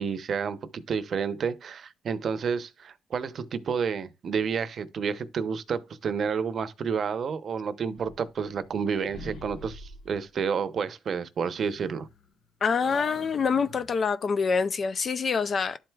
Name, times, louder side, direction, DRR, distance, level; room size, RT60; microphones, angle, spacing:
voice 1, 0.0-12.1, right 6 dB, 55° right, 0.7 m, -30 dB
sound 1, 8.0-8.8 9.1-10.2 11.6-12.4 12.8-14.0, left 2 dB, 75° left, 1.7 m, -45 dB
voice 2, 12.6-15.8, left 5 dB, 45° left, 0.4 m, -26 dB
11.5 x 4.5 x 2.3 m
cardioid pair, 90°, 0 cm